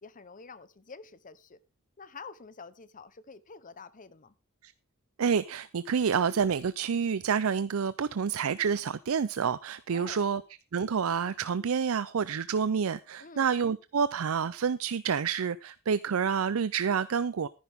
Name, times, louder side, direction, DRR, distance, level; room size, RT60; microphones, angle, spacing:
voice 1, 0.0-1.6 2.0-4.3 9.9-10.3 13.2-13.5, left 4 dB, 40° left, 0.9 m, -48 dB
voice 2, 5.2-10.4 10.7-17.5, right 6 dB, 75° right, 0.5 m, -28 dB
14.0 x 10.5 x 3.6 m
head